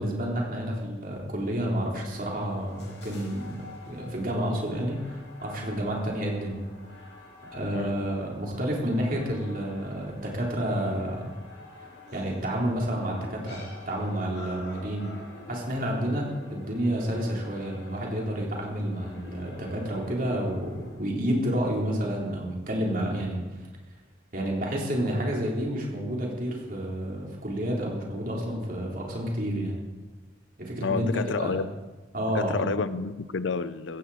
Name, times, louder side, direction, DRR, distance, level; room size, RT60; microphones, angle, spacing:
voice 1, 0.0-3.5 3.9-6.6 7.5-11.2 12.1-13.6 13.9-15.1 15.5-23.4 24.3-29.8 30.6-31.1 31.4-31.6 32.1-32.7, equal, 45° right, -2 dB, 3.7 m, -30 dB
sound 1, 2.0-21.0, left 2 dB, 65° left, 5.2 m, -48 dB
voice 2, 30.8-31.7 32.3-34.0, left 4 dB, 90° left, 15 dB, 0.6 m, -29 dB
15.5 x 15.0 x 4.3 m, 1.3 s
head